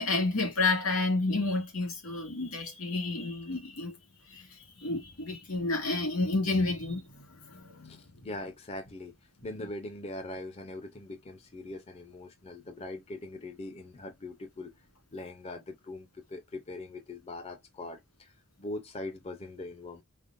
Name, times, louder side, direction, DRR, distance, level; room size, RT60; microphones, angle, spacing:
voice 1, 0.0-4.0 4.3-8.0, left 3 dB, 90° left, 2.1 m, -30 dB
voice 2, 7.8-9.1 9.4-14.7 15.1-18.3 18.6-20.0, left 2 dB, 30° left, 0.5 m, -41 dB
5.1 x 2.1 x 2.4 m
head